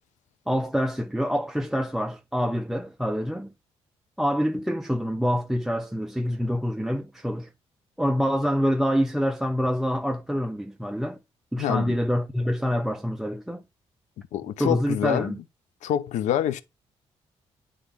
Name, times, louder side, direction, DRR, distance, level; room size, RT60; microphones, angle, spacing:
voice 1, 0.5-3.5 4.2-7.5 8.0-11.2 11.5-13.6 14.6-15.4, equal, 5° right, 0.5 m, -26 dB
voice 2, 11.6-11.9 14.3-15.4 15.8-16.6, left 11 dB, 90° left, 0.7 m, -26 dB
9.6 x 3.6 x 3.4 m
cardioid pair, 95°, 12 cm